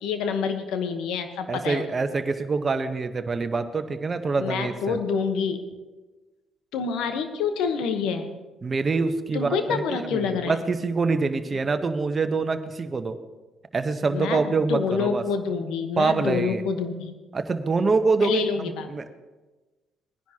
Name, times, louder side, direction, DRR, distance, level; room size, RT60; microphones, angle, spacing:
voice 1, 0.0-1.9 4.4-5.6 6.7-8.3 9.3-10.6 11.5-11.6 14.1-17.1 18.2-18.9, left 6 dB, 75° left, 7 dB, 1.1 m, -27 dB
voice 2, 1.5-5.0 8.6-13.2 13.7-15.2 16.0-16.6 17.3-19.0, right 4 dB, 35° right, 9 dB, 1.0 m, -25 dB
19.0 x 10.5 x 2.9 m, 1.2 s
hypercardioid pair, 55°, 0 cm